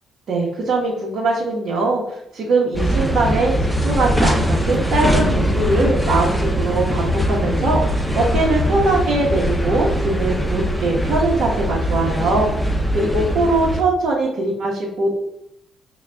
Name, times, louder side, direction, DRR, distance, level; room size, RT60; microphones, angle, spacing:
voice 1, 0.3-2.0 2.3-15.1, right 2 dB, 70° right, -5 dB, 1.0 m, -21 dB
sound 1, 2.7-13.8, equal, 5° left, 0.6 m, -21 dB
4.9 x 2.3 x 3.3 m, 0.76 s
cardioid pair, 90°, 0 cm